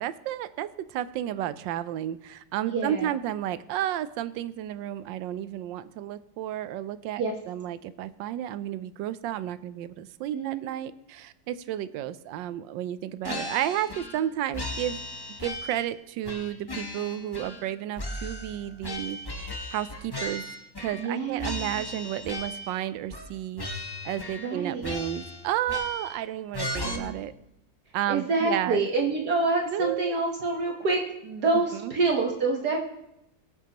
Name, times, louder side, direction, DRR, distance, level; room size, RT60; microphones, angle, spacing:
voice 1, 0.0-7.2 7.5-15.0 15.4-19.2 19.7-20.4 20.8-23.6 24.0-27.3 27.9-28.9 29.7-30.2 31.5-31.9, right 12 dB, 80° right, 14 dB, 1.3 m, -32 dB
voice 2, 2.6-3.1 7.2-7.3 10.3-10.7 20.9-21.9 24.4-24.9 26.8-27.2 28.1-32.8, right 3 dB, 60° right, 1 dB, 1.6 m, -27 dB
sound 1, 13.2-14.3 14.5-15.9 16.2-17.7 18.0-21.1 21.4-22.8 23.1-23.3 23.6-24.5 24.8-26.2 26.5-27.0, left 1 dB, 20° left, 0.6 m, -36 dB
20.5 x 8.1 x 2.9 m, 0.81 s
omnidirectional pair, 2.0 m